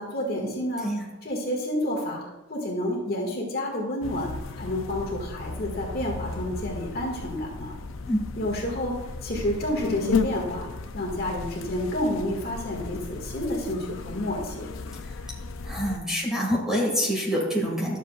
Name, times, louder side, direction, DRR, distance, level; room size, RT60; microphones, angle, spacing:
voice 1, 0.0-0.9 1.2-2.2 2.5-7.7 8.3-9.0 9.2-10.7 10.9-14.7, left 1 dB, 50° left, -1 dB, 1.7 m, -29 dB
sound 1, 4.0-16.0, left 4 dB, 80° left, 0.5 m, -34 dB
voice 2, 15.6-18.0, equal, 5° right, -4 dB, 1.8 m, -26 dB
12.0 x 7.3 x 2.3 m, 1.0 s
head